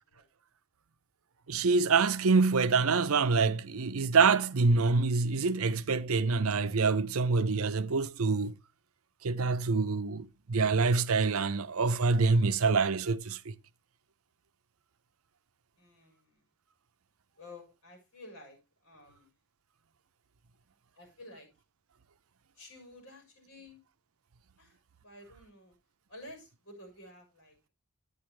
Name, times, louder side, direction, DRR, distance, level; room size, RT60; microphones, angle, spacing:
voice 1, 1.5-8.5 9.2-13.4, right 4 dB, 75° right, 0.7 m, -26 dB
voice 2, 15.8-16.4 17.4-18.6 18.8-19.3 21.0-21.5 22.6-23.8 24.6-24.8 25.0-25.7 26.1-27.7, left 1 dB, 60° left, 6.7 m, -51 dB
10.5 x 9.6 x 3.3 m
head